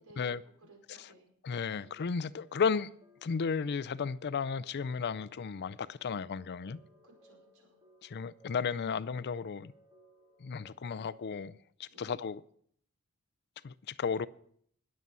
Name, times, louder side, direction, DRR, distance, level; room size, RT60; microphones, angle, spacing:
voice 1, 0.0-1.3 7.0-7.8 11.9-12.2, right 2 dB, 75° right, 5.0 m, -59 dB
voice 2, 1.4-2.9 3.2-6.8 8.0-9.7 10.4-12.4 13.6-14.3, left 5 dB, 50° left, 0.4 m, -34 dB
sound 1, 1.8-11.4, left 1 dB, 20° right, 2.1 m, -63 dB
20.0 x 7.4 x 5.5 m
head